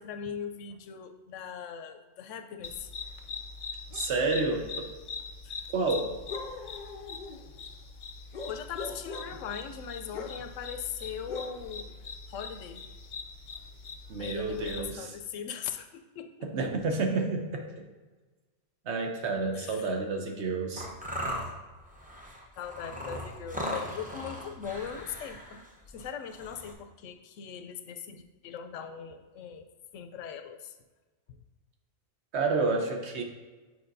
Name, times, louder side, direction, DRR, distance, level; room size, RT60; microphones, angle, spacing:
voice 1, 0.0-2.9 5.4-5.7 8.5-11.9 12.3-12.8 14.2-16.5 19.5-19.9 22.6-29.7 29.9-30.7 31.3-31.4, left 7 dB, 90° left, 8 dB, 0.9 m, -40 dB
sound 1, 2.6-14.9, left 4 dB, 55° left, 0.5 m, -41 dB
voice 2, 3.9-4.9 5.7-6.1 14.1-15.1 16.4-17.7 18.8-20.9 32.3-33.2, right 3 dB, 65° right, 3 dB, 1.1 m, -30 dB
sound 2, 20.8-26.7, equal, 10° right, 0.7 m, -38 dB
8.8 x 4.6 x 2.6 m, 1.2 s
omnidirectional pair, 1.3 m